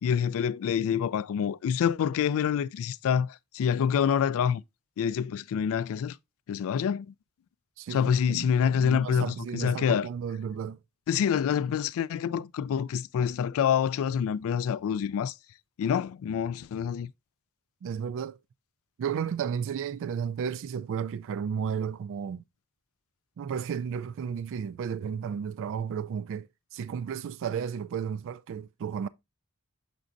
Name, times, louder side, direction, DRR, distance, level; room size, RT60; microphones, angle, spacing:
voice 1, 0.0-4.6 5.0-6.2 6.5-7.1 7.9-10.1 11.1-15.3 15.8-17.1, left 8 dB, 65° left, 0.3 m, -27 dB
voice 2, 7.8-10.8 17.8-18.4 19.0-22.4 23.4-29.1, right 7 dB, 60° right, 0.3 m, -33 dB
6.8 x 6.1 x 2.5 m
head